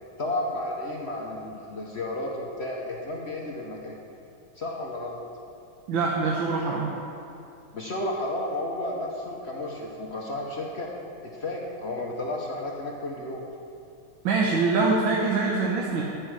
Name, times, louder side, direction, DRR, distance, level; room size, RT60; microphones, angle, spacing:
voice 1, 0.2-4.0 4.6-5.2 7.7-10.9 11.2-13.4, left 1 dB, 55° left, -2 dB, 0.7 m, -32 dB
voice 2, 5.9-6.9 14.2-16.0, right 3 dB, 65° right, -2 dB, 1.6 m, -24 dB
13.5 x 5.4 x 6.3 m, 2.6 s
omnidirectional pair, 2.3 m